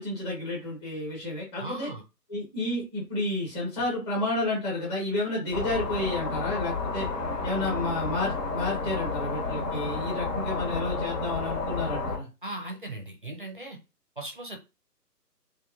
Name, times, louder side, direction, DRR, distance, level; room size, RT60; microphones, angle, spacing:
voice 1, 0.0-1.9 2.3-7.1 7.4-12.3, left 2 dB, 15° left, -5 dB, 0.9 m, -31 dB
voice 2, 1.6-2.0 12.4-13.8 14.2-14.6, right 2 dB, 35° right, 1 dB, 0.4 m, -38 dB
sound 1, 5.5-12.2, left 3 dB, 65° left, 1.1 m, -31 dB
3.0 x 2.2 x 2.3 m, 0.28 s
figure-of-eight pair, 140°, 49 cm